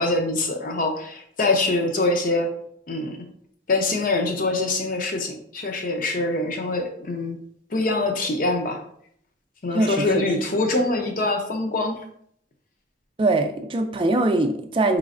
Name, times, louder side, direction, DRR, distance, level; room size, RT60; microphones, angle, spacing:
voice 1, 0.0-2.5 2.9-3.2 3.7-7.4 7.7-8.8 9.6-11.9, left 2 dB, 45° left, 4 dB, 0.6 m, -24 dB
voice 2, 9.7-10.2 13.2-15.0, right 2 dB, 30° right, 5 dB, 0.4 m, -22 dB
4.9 x 3.1 x 2.5 m, 0.67 s
head